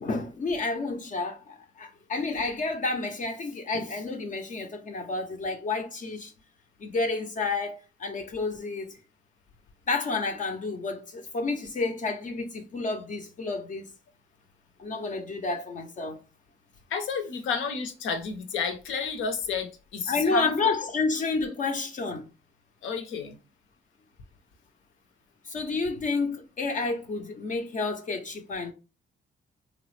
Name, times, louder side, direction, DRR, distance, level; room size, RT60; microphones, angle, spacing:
voice 1, 0.0-6.3 6.8-9.0 9.9-13.9 14.8-16.2 20.1-22.3 25.4-28.7, left 3 dB, 40° left, 0.5 m, -30 dB
voice 2, 16.9-20.5 22.8-23.4, left 6 dB, 80° left, 0.7 m, -31 dB
3.2 x 2.0 x 3.1 m
cardioid pair, 90°, 20 cm